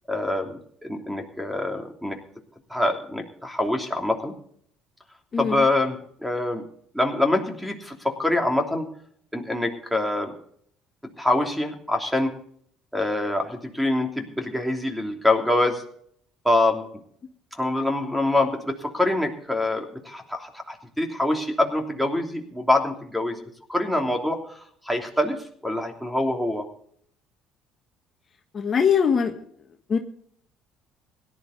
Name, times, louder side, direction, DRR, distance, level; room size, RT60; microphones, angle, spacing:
voice 1, 0.1-2.2 2.7-4.3 5.4-6.0 6.2-6.6 6.9-8.9 9.3-10.3 11.2-12.3 12.9-15.8 16.4-16.9 17.6-23.4 23.7-25.4 25.6-26.6, left 2 dB, ahead, 4 dB, 3.0 m, -25 dB
voice 2, 5.3-5.7 28.5-29.4 29.9-30.0, left 6 dB, 40° left, 4 dB, 1.6 m, -22 dB
17.0 x 11.0 x 3.9 m, 0.62 s
supercardioid pair, 85°, 0 cm